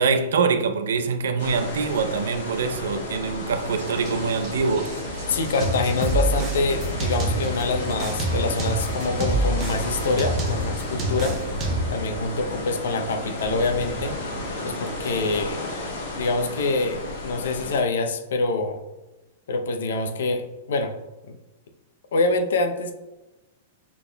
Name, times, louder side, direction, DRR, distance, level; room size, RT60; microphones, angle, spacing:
voice 1, 0.0-4.9, right 5 dB, 85° right, 0.4 m, -24 dB
sound 1, 1.4-17.8, left 2 dB, 60° left, 1.4 m, -33 dB
Rain, 3.6-15.4, right 1 dB, 35° right, 1.3 m, -36 dB
voice 2, 5.3-11.4 11.9-14.1 14.6-15.6 16.2-18.8 19.5-20.9 21.3-21.4 22.1-22.9, left 3 dB, 80° left, 0.6 m, -25 dB
sound 2, 5.6-7.6 8.0-12.0, right 2 dB, 20° right, 0.5 m, -26 dB
5.9 x 3.5 x 2.2 m
supercardioid pair, 175°, 0 cm